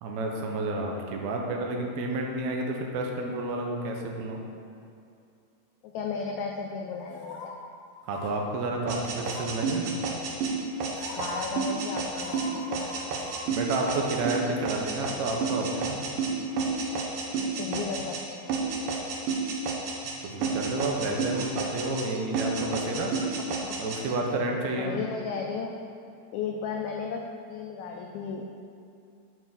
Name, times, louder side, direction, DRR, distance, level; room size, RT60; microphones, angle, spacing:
voice 1, 0.0-4.4 8.0-9.9 13.5-16.0 20.2-23.1 23.8-25.0, right 2 dB, 70° right, 1 dB, 1.9 m, -30 dB
voice 2, 5.8-7.5 11.1-13.5 17.3-18.9 24.7-25.7 26.3-28.5, left 5 dB, 85° left, 2 dB, 1.6 m, -35 dB
sound 1, 7.1-7.5 8.1-8.3 9.2-9.6 10.5-10.6 11.0-11.4 12.1-13.4 13.7-13.8, left 3 dB, 65° left, 2.1 m, -42 dB
sound 2, 8.9-18.2 18.5-20.2 20.4-22.1 22.3-24.0, right 4 dB, 90° right, 2.7 m, -30 dB
8.0 x 4.9 x 5.7 m, 2.5 s
omnidirectional pair, 3.8 m